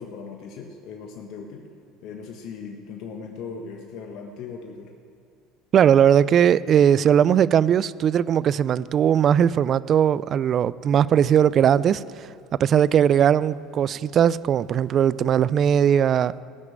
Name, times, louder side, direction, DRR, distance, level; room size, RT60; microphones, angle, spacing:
voice 1, 0.0-1.7 2.0-4.9, left 5 dB, 60° left, 1.4 m, -38 dB
voice 2, 5.7-12.3 12.6-16.4, right 9 dB, 45° right, 0.4 m, -19 dB
18.0 x 6.5 x 9.0 m
supercardioid pair, 95°, 0 cm